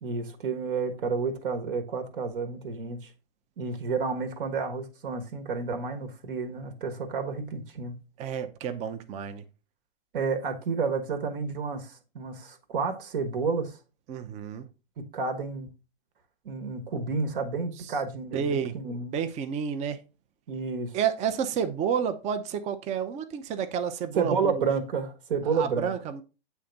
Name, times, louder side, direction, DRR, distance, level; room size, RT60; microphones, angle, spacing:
voice 1, 0.0-3.1 3.6-8.0 10.1-13.8 15.0-15.7 16.4-19.1 20.5-21.0 24.1-25.9, right 5 dB, 60° right, 1.3 m, -30 dB
voice 2, 8.2-9.4 14.1-14.7 18.3-18.8 19.1-20.0 20.9-24.6 25.5-26.2, right 7 dB, 25° right, 0.6 m, -30 dB
8.3 x 3.5 x 3.9 m
hypercardioid pair, 120°, 30 cm